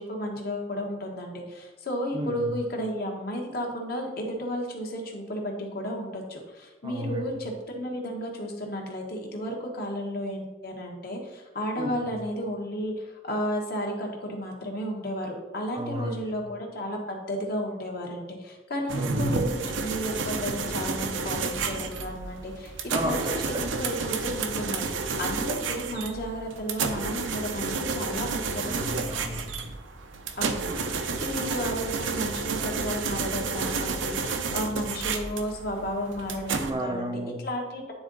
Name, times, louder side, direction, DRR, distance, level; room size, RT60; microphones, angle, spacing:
voice 1, 0.0-22.7 23.0-23.2 23.8-28.7 30.4-37.1 37.4-37.9, equal, 50° left, 1 dB, 1.3 m, -33 dB
voice 2, 2.1-2.5 6.8-7.3 11.8-12.1 15.7-16.4 19.0-19.3 22.9-23.8 28.6-29.6 36.6-37.4, equal, 20° right, 4 dB, 0.5 m, -33 dB
sound 1, 18.9-36.7, right 4 dB, 75° right, 0.7 m, -31 dB
9.6 x 3.8 x 3.9 m, 1.2 s
head